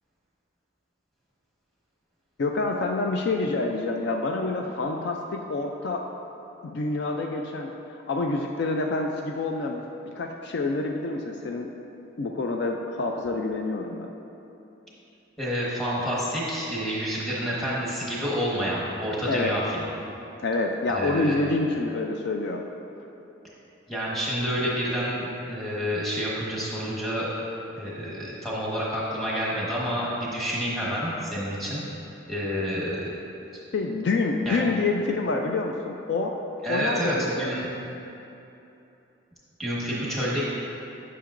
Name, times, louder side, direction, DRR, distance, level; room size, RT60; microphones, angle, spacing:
voice 1, 2.4-6.1 6.6-11.7 12.2-14.1 19.3-19.6 20.4-22.7 33.7-36.4 36.7-37.5, left 3 dB, 55° left, 2 dB, 0.3 m, -27 dB
voice 2, 15.4-19.8 20.9-21.4 23.9-27.3 27.8-31.8 32.3-33.1 33.5-33.6 34.4-34.6 36.6-37.7 39.6-40.4, equal, ahead, -7 dB, 1.2 m, -28 dB
10.0 x 6.0 x 2.5 m, 2.9 s
head